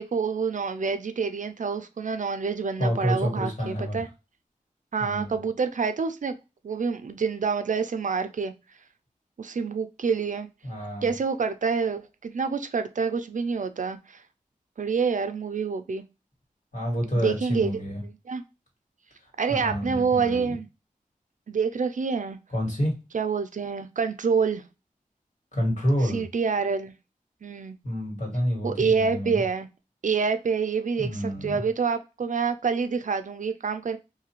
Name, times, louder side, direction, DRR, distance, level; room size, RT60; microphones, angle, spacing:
voice 1, 0.0-4.1 4.9-6.3 6.6-8.5 9.4-10.5 11.0-14.2 14.8-16.0 17.2-17.7 18.3-18.4 19.4-20.7 21.5-22.4 23.1-24.6 26.0-26.9 27.4-27.8 28.6-29.7 30.0-34.0, right 5 dB, 60° right, 0.4 m, -27 dB
voice 2, 2.8-4.0 5.0-5.4 10.6-11.1 16.7-18.0 19.5-20.6 22.5-22.9 25.5-26.2 27.8-29.4 31.0-31.6, equal, 60° left, 1.9 m, -28 dB
2.7 x 2.4 x 2.9 m
wide cardioid pair, 55°, 15 cm